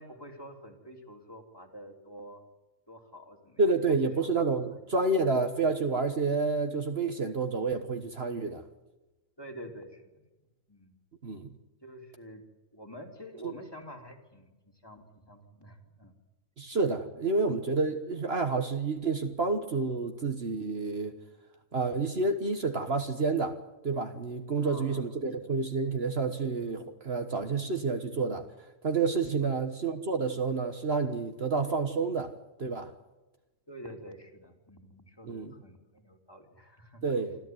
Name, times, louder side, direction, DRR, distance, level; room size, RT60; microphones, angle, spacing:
voice 1, 0.0-2.4 2.9-3.6 3.9-4.0 4.7-4.8 9.4-10.2 10.7-11.0 11.8-12.4 12.7-16.1 24.6-25.0 29.4-29.5 33.7-37.0, equal, 20° left, 3 dB, 3.2 m, -48 dB
voice 2, 3.6-8.6 11.2-11.5 13.4-13.5 16.6-21.2 21.7-23.5 23.8-28.4 28.8-32.3 32.6-32.9 35.2-35.5 37.0-37.4, right 4 dB, 50° right, 6 dB, 1.6 m, -29 dB
26.0 x 14.0 x 9.5 m, 1.1 s
omnidirectional pair, 1.3 m